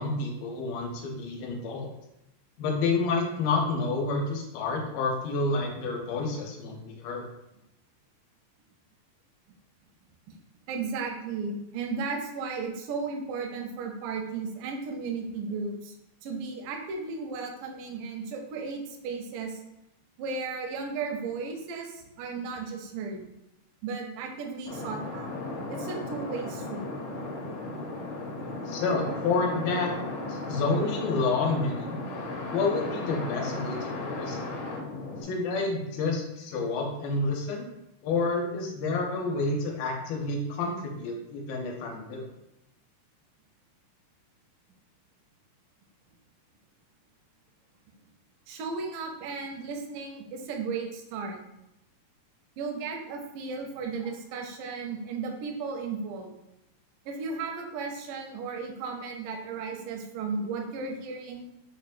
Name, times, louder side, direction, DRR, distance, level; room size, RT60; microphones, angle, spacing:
voice 1, 0.0-1.9 2.6-7.3 28.7-29.9 30.3-32.0 32.5-34.6 35.2-37.7 38.0-42.3, left 3 dB, 90° left, 0 dB, 2.4 m, -29 dB
voice 2, 10.7-15.9 16.2-19.6 20.2-23.3 23.8-25.3 25.7-26.9 48.5-51.4 52.6-56.3 57.1-61.4, right 4 dB, 80° right, 1 dB, 2.0 m, -35 dB
sound 1, 24.7-35.2, left 2 dB, 75° left, 1.6 m, -35 dB
5.7 x 2.1 x 2.4 m, 0.87 s
omnidirectional pair, 4.1 m